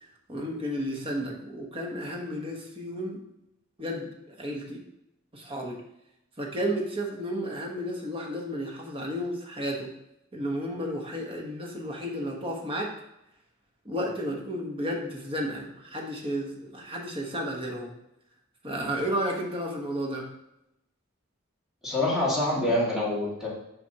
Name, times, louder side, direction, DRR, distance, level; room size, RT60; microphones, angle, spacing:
voice 1, 0.0-3.2 3.8-4.8 5.3-5.8 6.4-9.9 10.3-12.9 13.8-17.9 18.6-20.3, equal, 25° right, 0 dB, 1.1 m, -32 dB
voice 2, 21.8-23.5, left 1 dB, ahead, -7 dB, 2.1 m, -26 dB
7.6 x 5.0 x 2.9 m, 0.84 s
head